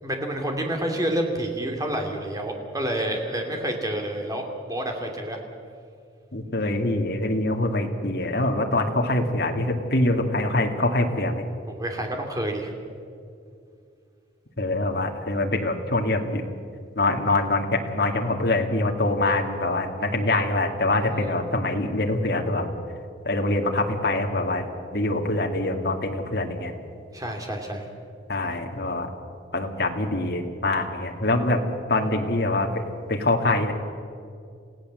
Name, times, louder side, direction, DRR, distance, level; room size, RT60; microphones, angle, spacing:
voice 1, 0.0-5.4 11.7-12.7 21.0-21.2 27.1-27.9, right 1 dB, 20° right, 3 dB, 2.8 m, -29 dB
voice 2, 6.3-11.4 14.6-16.4 17.0-22.7 23.3-24.7 24.9-26.7 28.3-29.1 29.5-31.6 31.9-32.8 33.1-33.7, left 2 dB, 55° left, 2 dB, 2.1 m, -24 dB
29.0 x 16.5 x 7.7 m, 2.4 s
head